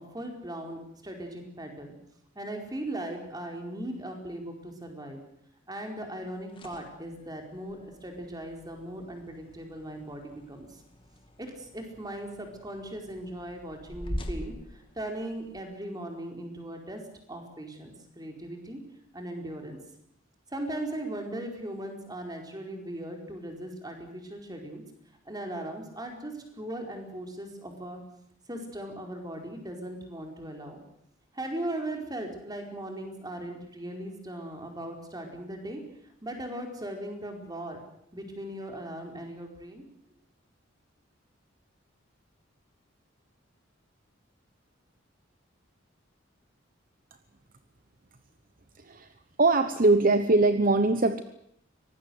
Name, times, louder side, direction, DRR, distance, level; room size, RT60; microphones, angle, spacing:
voice 1, 0.0-1.9 2.3-5.2 5.7-10.8 11.4-17.0 17.3-18.8 19.1-19.8 20.5-24.8 25.2-28.0 28.5-30.8 31.3-35.8 36.2-37.8 38.1-39.8, right 1 dB, 20° right, 3 dB, 4.6 m, -38 dB
sound 1, 6.4-15.6, equal, 25° left, 2.4 m, -44 dB
voice 2, 48.8-49.1 49.4-51.2, right 2 dB, 45° right, 10 dB, 1.0 m, -22 dB
24.0 x 19.0 x 7.9 m, 0.71 s
head